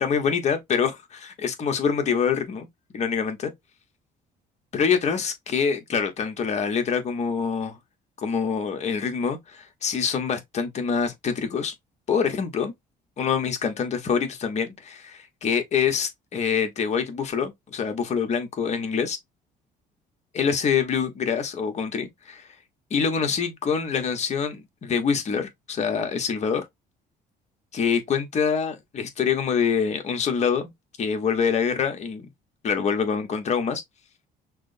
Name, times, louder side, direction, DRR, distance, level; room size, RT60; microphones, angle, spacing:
voice 1, 0.0-2.7 2.9-3.5 4.7-7.8 8.2-11.7 12.1-12.7 13.2-19.2 20.3-22.5 22.9-26.7 27.7-30.7 31.0-32.3 32.6-33.8, left 6 dB, 40° left, 1.0 m, -25 dB
5.9 x 2.0 x 2.6 m
cardioid pair, 110°, 17 cm